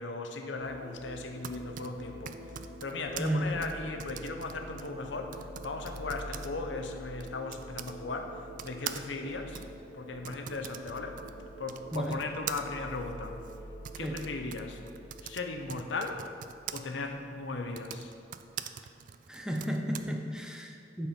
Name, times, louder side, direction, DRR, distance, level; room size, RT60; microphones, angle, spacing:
voice 1, 0.0-9.6 9.9-11.2 11.6-13.4 14.0-14.8 15.2-16.2 16.7-18.1, left 3 dB, 85° left, 4 dB, 0.7 m, -37 dB
sound 1, 0.5-18.1, equal, 60° left, 1.8 m, -47 dB
Typing, 1.1-8.0 8.6-16.8 17.6-20.0, right 9 dB, 45° right, 0.3 m, -44 dB
voice 2, 19.3-21.1, right 1 dB, 5° right, 2 dB, 0.6 m, -33 dB
8.6 x 4.5 x 5.8 m, 2.5 s
head